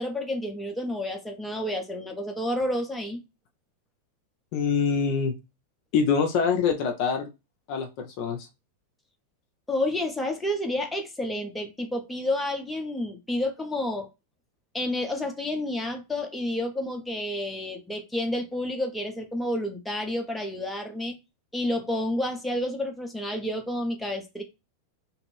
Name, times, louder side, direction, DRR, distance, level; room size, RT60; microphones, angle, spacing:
voice 1, 0.0-3.2 9.7-14.1 14.7-21.2 21.5-24.4, left 1 dB, 5° left, 0.7 m, -30 dB
voice 2, 4.5-5.3 5.9-7.3 7.7-8.5, left 6 dB, 45° left, 0.5 m, -25 dB
2.6 x 2.5 x 3.1 m
figure-of-eight pair, 90°, 0 cm